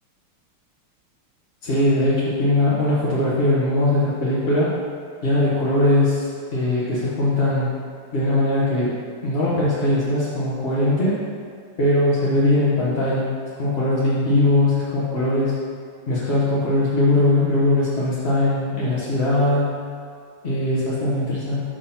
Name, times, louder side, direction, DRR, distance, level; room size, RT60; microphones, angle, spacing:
voice 1, 1.6-4.8 5.2-7.7 8.1-11.2 11.8-13.3 13.6-15.6 16.1-19.7 20.4-21.6, left 1 dB, 45° left, -8 dB, 0.9 m, -20 dB
5.1 x 4.8 x 5.7 m, 2.1 s
omnidirectional pair, 2.4 m